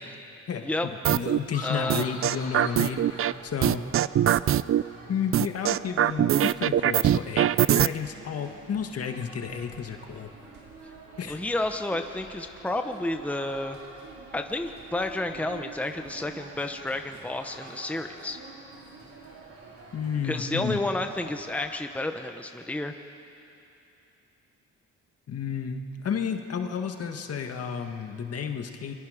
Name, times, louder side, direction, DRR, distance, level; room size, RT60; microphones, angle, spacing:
sound 1, 1.0-1.4 1.9-3.3 3.6-4.8 5.3-7.9, right 11 dB, 45° right, 0.4 m, -22 dB
voice 1, 1.1-3.8 5.1-10.3 11.2-11.4 19.9-20.8 25.3-28.9, left 7 dB, 55° left, 5 dB, 1.7 m, -32 dB
sound 2, 1.5-4.0, left 2 dB, 25° left, 3.4 m, -42 dB
voice 2, 1.6-2.1 11.3-13.8 14.3-18.4 20.2-22.9, left 2 dB, 5° left, 6 dB, 1.0 m, -31 dB
sound 3, 2.3-21.8, right 3 dB, 70° right, 4.9 m, -48 dB
29.5 x 22.5 x 5.1 m, 2.9 s
cardioid pair, 90°, 30 cm